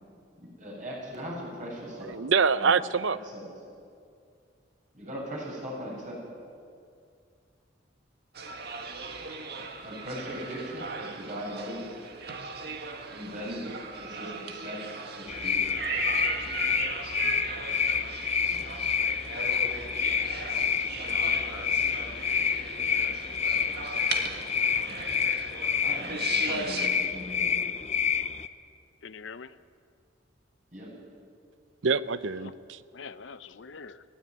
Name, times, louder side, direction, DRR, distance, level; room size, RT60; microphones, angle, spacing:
voice 1, 0.6-2.2 2.6-2.7 3.3-3.4 4.9-6.2 9.8-11.9 13.1-13.7 14.0-14.8 15.2-15.6 18.5-18.8 25.8-27.6 30.7-30.9, equal, 40° right, -3 dB, 7.8 m, -39 dB
voice 2, 2.0-3.2 31.8-32.8, right 5 dB, 80° right, 15 dB, 0.7 m, -25 dB
sound 1, 8.3-26.9, right 4 dB, 60° right, 1.9 m, -38 dB
sound 2, 15.3-28.5, left 7 dB, 35° left, 0.6 m, -28 dB
voice 3, 19.9-21.1 21.5-21.7 29.0-29.6 32.4-32.5 32.9-34.0, left 5 dB, 75° left, 14 dB, 0.7 m, -46 dB
20.0 x 16.5 x 9.6 m, 2.3 s
head